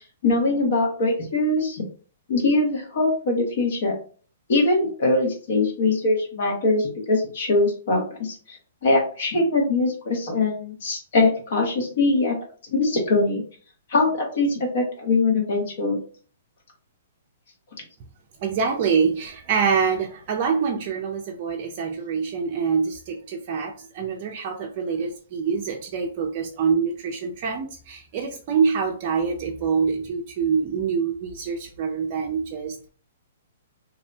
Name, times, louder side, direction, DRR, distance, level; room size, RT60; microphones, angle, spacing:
voice 1, 0.2-1.8 2.3-4.0 4.5-8.6 8.8-12.4 12.6-13.4 13.9-16.0, left 2 dB, 60° left, 1 dB, 1.1 m, -22 dB
voice 2, 18.4-32.9, right 6 dB, 40° right, 1 dB, 0.4 m, -25 dB
2.6 x 2.1 x 2.6 m, 0.42 s
hypercardioid pair, 140°, 0 cm